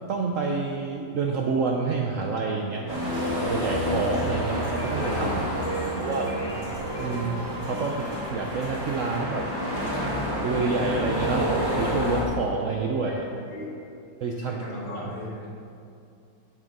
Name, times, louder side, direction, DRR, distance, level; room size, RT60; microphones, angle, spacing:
voice 1, 0.1-3.0 3.4-5.6 6.0-6.3 7.0-9.9 10.4-13.3 14.2-14.6 15.0-15.1, right 4 dB, 70° right, 1 dB, 0.7 m, -28 dB
sound 1, 2.9-12.2, left 1 dB, 15° right, 1.6 m, -30 dB
sound 2, 3.0-9.4, right 1 dB, 30° right, 1.2 m, -37 dB
sound 3, 3.1-8.9 9.4-13.7, right 3 dB, 35° left, 0.8 m, -36 dB
voice 2, 5.8-6.8 7.1-7.3 14.5-15.5, equal, 90° left, -7 dB, 2.8 m, -38 dB
7.7 x 6.2 x 5.3 m, 2.5 s
omnidirectional pair, 2.0 m